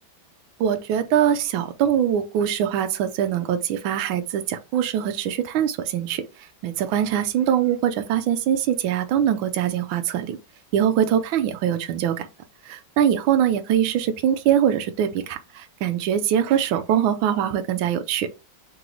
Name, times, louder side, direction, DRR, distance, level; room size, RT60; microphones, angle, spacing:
voice 1, 0.6-10.4 10.7-12.3 12.6-18.3, right 9 dB, 80° right, 1.4 m, -23 dB
3.8 x 3.1 x 3.7 m
omnidirectional pair, 2.2 m